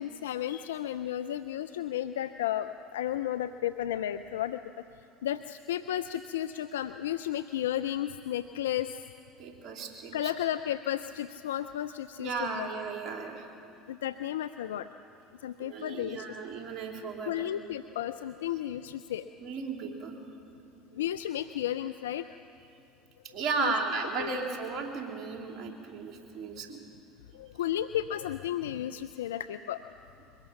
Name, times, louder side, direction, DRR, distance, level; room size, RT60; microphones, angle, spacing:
voice 1, 0.0-4.6 5.2-9.0 10.1-12.7 13.9-14.9 15.4-16.4 17.3-19.3 20.9-22.4 23.6-23.7 24.2-24.3 27.3-29.8, left 11 dB, 80° left, 11 dB, 0.4 m, -33 dB
voice 2, 9.4-10.3 12.2-13.5 15.6-17.3 19.4-20.1 23.3-26.8, right 4 dB, 50° right, 1 dB, 3.4 m, -35 dB
23.0 x 20.5 x 5.9 m, 2.6 s
hypercardioid pair, 70°, 0 cm